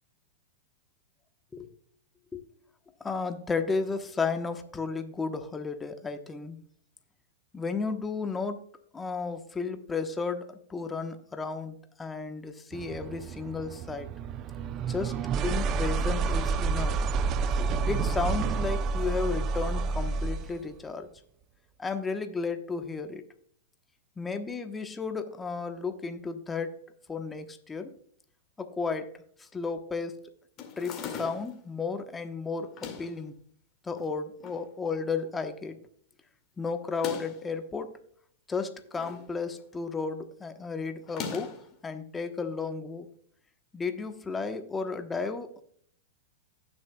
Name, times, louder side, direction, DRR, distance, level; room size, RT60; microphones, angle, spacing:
voice 1, 3.0-6.6 7.5-8.7 8.9-14.1 14.9-17.0 17.8-21.1 21.8-23.2 24.2-26.8 27.1-27.9 28.6-30.2 30.8-33.3 33.8-35.8 36.6-38.0 38.5-41.5 41.8-43.1 43.7-45.6, left 4 dB, 15° left, 7 dB, 1.0 m, -33 dB
sound 1, 12.7-20.6, right 4 dB, 35° right, 0.5 m, -29 dB
sound 2, 30.6-31.6 32.6-33.2 34.0-34.6 35.0-35.1 35.3-35.4 36.8-37.5 38.5-39.3 39.6-39.9 41.0-41.7, left 6 dB, 35° left, 2.2 m, -40 dB
18.5 x 6.3 x 2.3 m, 0.62 s
hypercardioid pair, 115°, 0 cm